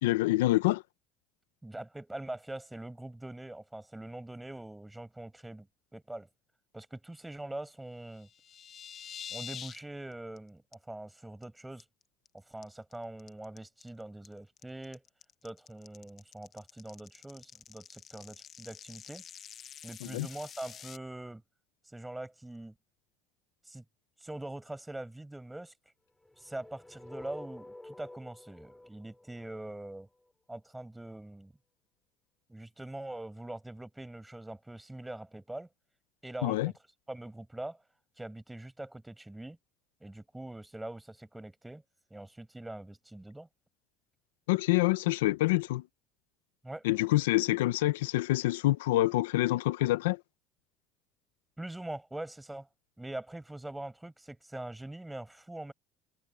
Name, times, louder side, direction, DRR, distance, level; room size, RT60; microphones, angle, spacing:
voice 1, 0.0-0.8 20.1-20.3 36.4-36.7 44.5-45.8 46.8-50.2, left 17 dB, 90° left, 0.8 m, -26 dB
voice 2, 1.6-5.7 5.9-6.3 6.7-8.3 9.3-11.8 12.3-15.0 15.4-19.2 19.8-21.4 21.9-22.7 23.7-23.8 24.2-25.7 26.4-30.1 30.5-31.5 32.5-35.7 36.2-36.7 37.1-37.8 38.2-39.6 40.0-41.8 42.1-43.5 46.6-46.8 51.6-52.7 53.0-55.7, right 1 dB, 10° right, 5.9 m, -43 dB
sound 1, 8.1-9.8 10.1-10.4 10.7-10.8 11.2-11.4 11.8-12.3 12.6-21.0, left 9 dB, 45° left, 1.2 m, -47 dB
sound 2, 26.2-30.3, left 1 dB, 10° left, 3.9 m, -50 dB
supercardioid pair, 85°, 0 cm